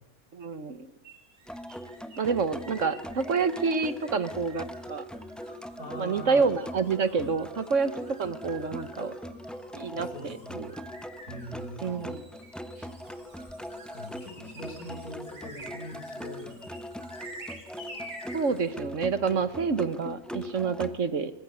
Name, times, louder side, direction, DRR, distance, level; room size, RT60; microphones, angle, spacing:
voice 1, 0.3-0.9 2.2-4.6 4.9-5.0 6.0-7.9 8.2-9.1 9.7-10.7 11.8-12.2 18.3-21.3, right 5 dB, 55° right, 13 dB, 1.5 m, -28 dB
sound 1, 1.0-18.7, right 1 dB, 80° right, 6.9 m, -49 dB
sound 2, 1.5-21.0, equal, ahead, 1.0 m, -41 dB
voice 2, 5.8-6.4 9.9-10.6 11.3-12.1 13.9-16.6, equal, 75° left, 4 dB, 6.3 m, -42 dB
24.5 x 20.5 x 8.2 m, 0.83 s
omnidirectional pair, 1.6 m